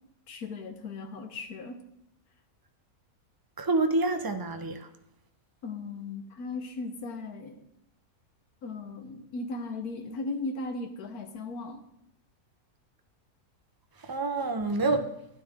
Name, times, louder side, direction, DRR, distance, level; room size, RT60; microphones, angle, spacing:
voice 1, 0.3-1.8 5.6-7.6 8.6-11.8, left 3 dB, 85° left, 1.6 m, -37 dB
voice 2, 3.6-4.9 14.0-15.1, right 2 dB, 25° right, 0.5 m, -27 dB
12.5 x 11.0 x 3.6 m
omnidirectional pair, 1.5 m